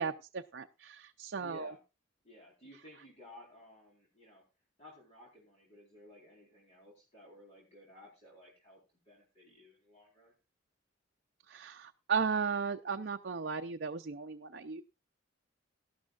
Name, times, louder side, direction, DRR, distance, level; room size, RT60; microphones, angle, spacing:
voice 1, 0.0-1.7 11.5-14.8, right 5 dB, 55° right, 4 dB, 0.6 m, -35 dB
voice 2, 1.4-1.8 2.2-4.4 4.8-8.8 9.1-10.3, left 1 dB, 35° left, -2 dB, 4.2 m, -56 dB
18.0 x 12.0 x 2.4 m, 0.28 s
head